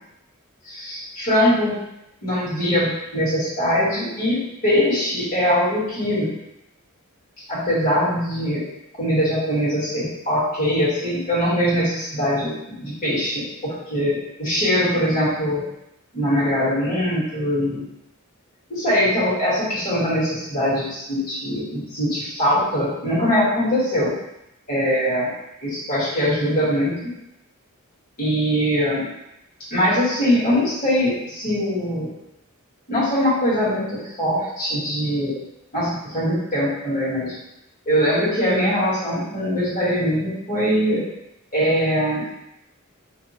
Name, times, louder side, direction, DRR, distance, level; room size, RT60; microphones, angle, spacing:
voice 1, 0.6-1.7 2.2-6.3 7.5-8.6 9.0-15.6 16.1-17.8 18.7-24.1 24.7-25.3 25.6-27.1 28.2-29.0 29.7-32.1 32.9-35.3 35.7-37.3 37.8-41.0 41.5-42.2, equal, 45° left, -10 dB, 1.5 m, -22 dB
2.7 x 2.2 x 2.8 m, 0.84 s
head